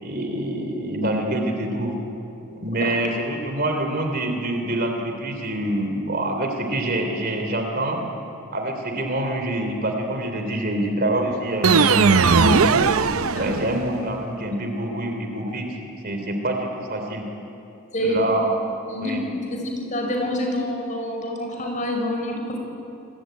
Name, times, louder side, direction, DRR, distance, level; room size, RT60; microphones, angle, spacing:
voice 1, 0.0-1.9 2.5-8.0 8.5-12.8 13.3-15.8 16.0-17.3 18.0-18.5 18.9-19.2, right 1 dB, 45° right, 4 dB, 3.2 m, -26 dB
sound 1, 11.6-13.9, right 5 dB, 70° right, 0.7 m, -18 dB
voice 2, 18.9-19.2 19.5-22.6, equal, 35° left, 2 dB, 5.2 m, -27 dB
26.5 x 21.5 x 9.3 m, 2.8 s
head